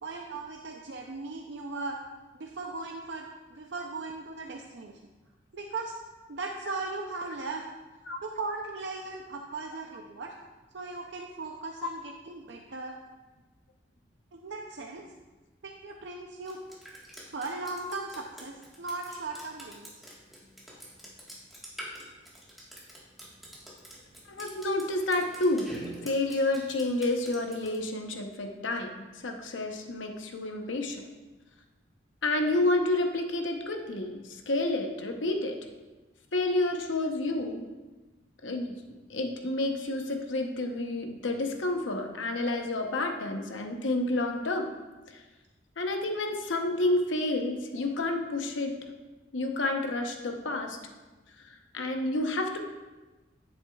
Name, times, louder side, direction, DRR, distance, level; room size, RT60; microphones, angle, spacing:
voice 1, 0.0-2.0 2.3-4.9 5.5-5.9 6.3-7.7 8.2-10.3 10.7-13.0 14.3-15.1 15.6-16.6 17.3-20.0, right 3 dB, 65° right, 1 dB, 0.5 m, -38 dB
Drip, 16.5-27.8, equal, ahead, 1.4 m, -46 dB
voice 2, 24.3-25.7 26.0-31.0 32.2-35.6 36.3-37.6 38.4-38.8 39.1-44.7 45.1-45.2 45.8-48.9 49.3-50.9 51.4-52.6, left 2 dB, 85° left, 4 dB, 0.8 m, -30 dB
9.9 x 7.9 x 2.3 m, 1.2 s
head